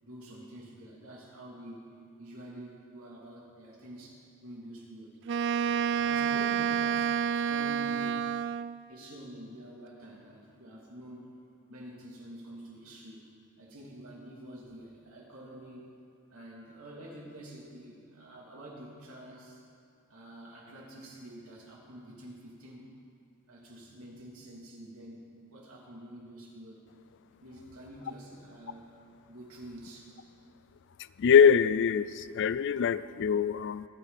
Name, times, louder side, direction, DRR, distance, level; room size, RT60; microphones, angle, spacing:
voice 1, 0.0-1.8 2.2-5.1 5.6-8.2 8.9-11.3 11.7-13.3 13.6-15.9 16.3-19.6 20.1-22.9 23.5-26.8 27.4-29.0 29.3-30.1, right 1 dB, 80° right, -3 dB, 3.0 m, -48 dB
Wind instrument woodwind instrument, 5.3-8.8, right 8 dB, 55° right, 0.3 m, -29 dB
voice 2, 31.2-33.9, left 7 dB, 55° left, 16 dB, 0.4 m, -23 dB
24.0 x 9.2 x 4.2 m, 2.5 s
head